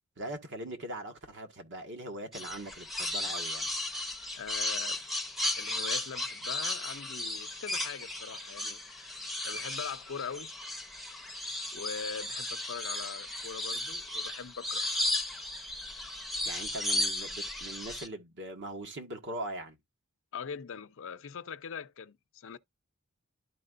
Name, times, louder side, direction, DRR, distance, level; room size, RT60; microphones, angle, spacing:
voice 1, 0.2-3.7 16.4-19.8, right 1 dB, 60° right, 1.5 m, -41 dB
sound 1, 2.3-18.1, left 1 dB, ahead, 0.7 m, -35 dB
voice 2, 4.3-5.0 5.6-8.8 9.4-10.5 11.7-14.8 20.3-22.6, left 6 dB, 65° left, 0.5 m, -41 dB
11.5 x 4.5 x 2.5 m
head